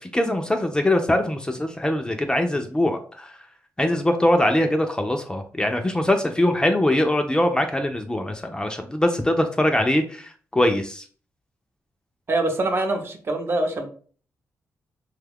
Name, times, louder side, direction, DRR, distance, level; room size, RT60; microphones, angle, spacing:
voice 1, 0.0-3.3 3.8-11.0, left 1 dB, 15° left, 5 dB, 0.4 m, -22 dB
voice 2, 12.3-13.9, right 2 dB, 40° right, 5 dB, 0.7 m, -24 dB
3.0 x 2.3 x 3.4 m, 0.43 s
cardioid pair, 90°, 6 cm